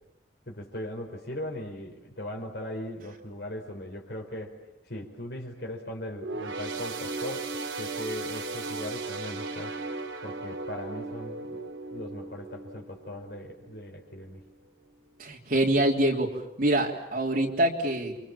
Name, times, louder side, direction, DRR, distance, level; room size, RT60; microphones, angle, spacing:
voice 1, 0.5-4.6 4.9-7.5 7.8-9.7 10.2-11.6 11.9-14.4, left 1 dB, 55° left, 1 dB, 5.1 m, -39 dB
sound 1, 6.2-13.9 14.3-14.5 15.3-15.4, right 3 dB, 90° right, 3.5 m, -36 dB
voice 2, 15.2-18.3, right 1 dB, 45° right, -1 dB, 3.5 m, -25 dB
30.0 x 26.5 x 7.3 m, 0.85 s
head